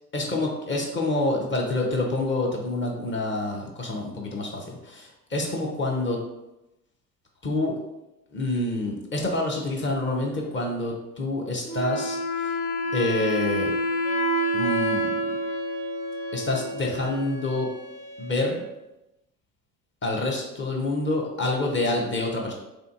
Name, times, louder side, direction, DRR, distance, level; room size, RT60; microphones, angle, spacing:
voice 1, 0.1-6.2 7.4-7.8 8.3-12.5 12.9-13.7 14.5-15.1 16.3-17.7 18.2-18.6 20.0-22.5, left 2 dB, 25° left, -1 dB, 0.7 m, -27 dB
Wind instrument woodwind instrument, 11.7-17.2, equal, 55° left, 0.8 m, -28 dB
Wind instrument woodwind instrument 2, 14.0-18.7, right 6 dB, 20° right, 0.4 m, -36 dB
3.4 x 2.6 x 2.5 m, 0.93 s
figure-of-eight pair, 60°, 48 cm